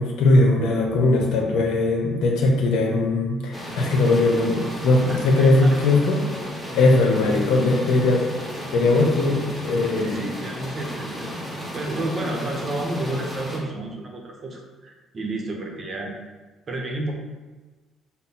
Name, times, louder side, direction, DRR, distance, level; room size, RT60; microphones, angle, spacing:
voice 1, 0.0-6.2 6.7-8.3 8.7-10.3, left 2 dB, 80° left, 1 dB, 0.9 m, -19 dB
sound 1, 3.5-13.6, equal, ahead, 1.0 m, -34 dB
voice 2, 5.1-5.9 9.9-11.5 11.7-16.1 16.7-17.1, right 2 dB, 35° right, 1 dB, 0.8 m, -31 dB
5.4 x 2.1 x 4.2 m, 1.3 s
cardioid pair, 125°, 0 cm